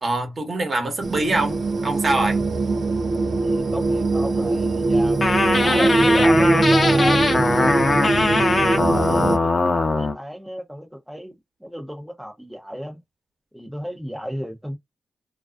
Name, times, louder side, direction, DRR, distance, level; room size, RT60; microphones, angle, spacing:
voice 1, 0.0-2.4, right 2 dB, 45° right, 1.0 m, -24 dB
sound 1, 1.0-9.4, right 3 dB, 65° right, 0.4 m, -21 dB
voice 2, 3.4-5.2 5.5-7.7 8.4-11.3 11.6-13.0 13.5-14.8, equal, 5° right, 0.6 m, -33 dB
sound 2, 5.2-10.1, left 3 dB, 40° left, 0.7 m, -21 dB
2.4 x 2.3 x 2.3 m
cardioid pair, 55°, 0 cm